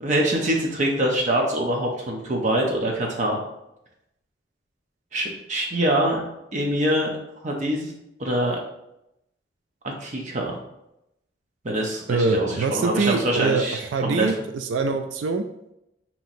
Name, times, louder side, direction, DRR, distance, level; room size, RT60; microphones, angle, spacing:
voice 1, 0.0-3.4 5.1-6.2 6.5-7.1 7.4-7.9 8.2-8.6 9.8-10.6 11.6-14.3, right 1 dB, 40° right, 0 dB, 0.6 m, -24 dB
voice 2, 12.1-15.5, right 3 dB, 80° right, 7 dB, 0.3 m, -24 dB
5.6 x 2.9 x 2.6 m, 0.84 s
head